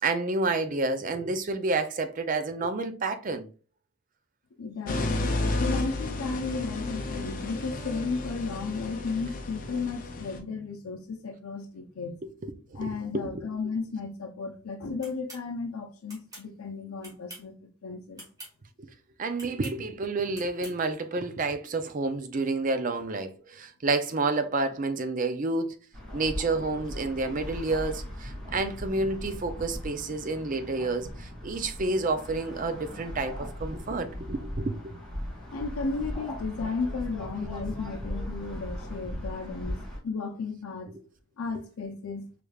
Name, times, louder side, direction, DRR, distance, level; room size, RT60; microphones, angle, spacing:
voice 1, 0.0-3.5 12.2-13.5 19.2-25.8 26.1-34.9 40.9-41.0, right 3 dB, 35° right, 0.4 m, -29 dB
voice 2, 4.6-12.2 12.7-17.5 17.8-18.2 35.5-40.9 41.4-42.3, left 4 dB, 80° left, 0.5 m, -34 dB
sound 1, 4.9-10.4, left 2 dB, 40° left, 0.6 m, -32 dB
sound 2, 15.0-15.4 16.1-16.5 17.0-17.5 18.1-18.5 19.3-19.8 20.3-20.8, right 1 dB, 15° right, 1.5 m, -45 dB
sound 3, 25.9-40.0, left 1 dB, ahead, 2.1 m, -38 dB
4.9 x 3.3 x 2.3 m
head